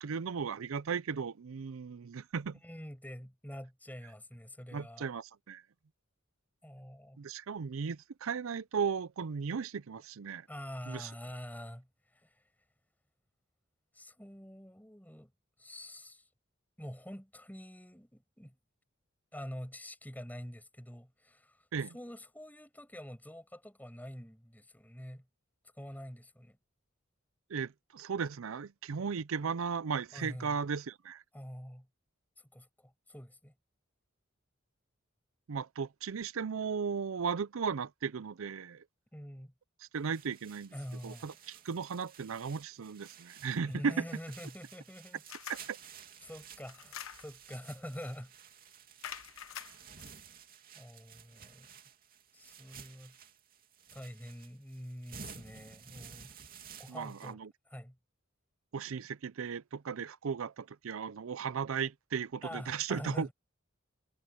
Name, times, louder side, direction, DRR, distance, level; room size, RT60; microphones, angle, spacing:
voice 1, 0.0-2.6 4.7-5.6 7.2-10.5 10.9-11.1 21.7-21.9 27.5-31.2 35.5-38.8 39.8-40.7 41.0-44.0 45.5-45.8 56.9-57.5 58.7-63.3, right 6 dB, 75° right, 0.5 m, -36 dB
voice 2, 2.6-5.1 6.6-7.2 10.5-11.9 12.1-12.4 13.9-15.3 15.6-16.3 16.8-18.6 19.3-21.6 21.9-25.2 25.8-26.6 30.1-30.6 31.3-31.9 32.5-33.5 39.1-39.5 40.7-41.3 43.6-45.2 46.2-48.3 49.3-49.4 50.8-51.7 52.3-53.2 53.9-56.4 56.8-57.4 57.7-58.0 62.4-63.3, equal, 10° left, 7.1 m, -46 dB
sound 1, 40.0-57.3, right 7 dB, 45° right, 2.7 m, -54 dB
sound 2, 45.3-45.7 46.6-47.4 48.0-48.2 49.0-50.1, left 9 dB, 80° left, 0.8 m, -46 dB
head